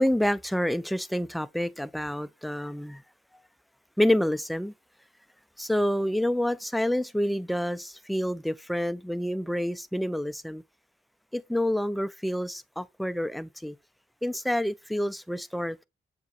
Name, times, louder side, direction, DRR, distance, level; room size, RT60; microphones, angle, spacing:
voice 1, 0.0-3.0 4.0-4.7 5.6-10.6 11.3-13.8 14.2-15.9, left 1 dB, ahead, 0.3 m, -28 dB
7.1 x 2.9 x 2.4 m
supercardioid pair, 50°, 20 cm